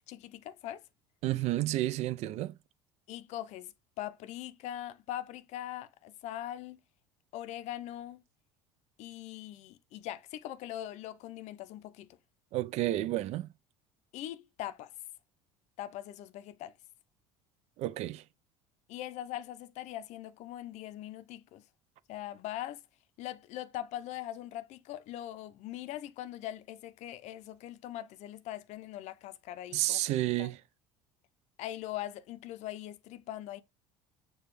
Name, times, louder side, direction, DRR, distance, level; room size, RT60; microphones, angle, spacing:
voice 1, 0.1-0.8 3.1-6.8 7.3-8.2 9.0-12.1 14.1-14.9 15.8-16.7 18.9-21.6 22.1-22.8 23.2-30.5 31.6-33.6, left 13 dB, 55° left, 0.5 m, -41 dB
voice 2, 1.2-2.5 12.5-13.5 17.8-18.2 29.7-30.5, right 15 dB, 55° right, 0.4 m, -30 dB
6.6 x 2.3 x 3.1 m
hypercardioid pair, 75°, 14 cm